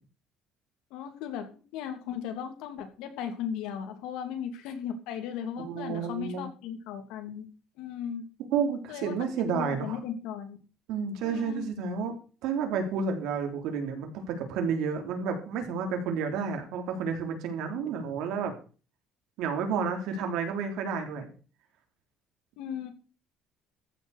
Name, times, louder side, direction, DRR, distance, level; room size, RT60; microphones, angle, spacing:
voice 1, 0.9-7.4 7.8-8.2 8.9-9.1 9.5-10.6 11.2-11.7 22.6-22.9, left 8 dB, 85° left, 6 dB, 2.9 m, -36 dB
voice 2, 5.6-6.5 8.5-10.0 10.9-12.1 12.4-18.5 19.4-21.3, right 6 dB, 75° right, 5 dB, 3.5 m, -31 dB
14.5 x 6.4 x 6.6 m, 0.37 s
cardioid pair, 165°, 0 cm